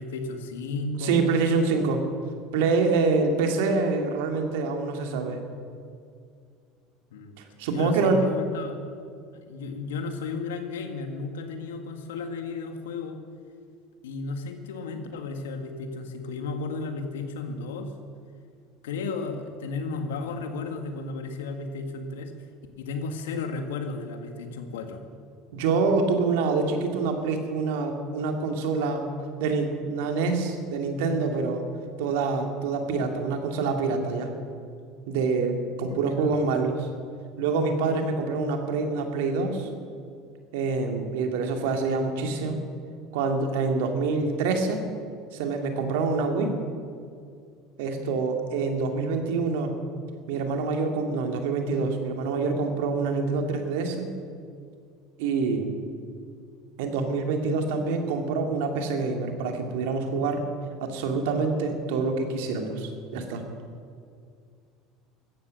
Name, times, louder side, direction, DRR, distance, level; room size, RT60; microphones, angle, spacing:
voice 1, 0.0-1.4 7.1-7.3 7.7-8.8 9.5-13.2 14.0-17.9 18.8-22.3 22.8-25.0 35.9-36.3, left 3 dB, 85° left, 6 dB, 1.8 m, -33 dB
voice 2, 1.0-2.0 2.5-5.4 7.6-8.2 25.5-29.1 29.4-31.7 32.0-34.3 35.1-36.9 37.4-39.7 40.5-42.6 43.1-44.9 45.3-46.5 47.8-49.7 50.3-54.1 55.2-55.7 56.8-60.5 60.8-63.4, right 4 dB, 75° right, 4 dB, 2.3 m, -26 dB
15.5 x 14.0 x 6.4 m, 2.2 s
hypercardioid pair, 85°, 0 cm